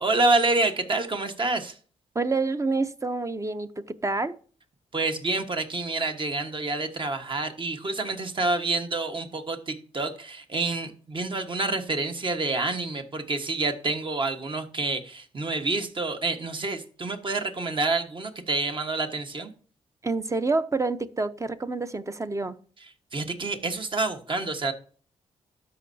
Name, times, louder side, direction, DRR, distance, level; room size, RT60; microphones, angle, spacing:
voice 1, 0.0-1.8 4.9-19.5 22.8-24.7, right 3 dB, 40° right, 1.4 m, -28 dB
voice 2, 2.1-4.3 20.0-22.6, right 3 dB, 25° right, 0.8 m, -28 dB
13.0 x 5.5 x 2.8 m
cardioid pair, 60°, 13 cm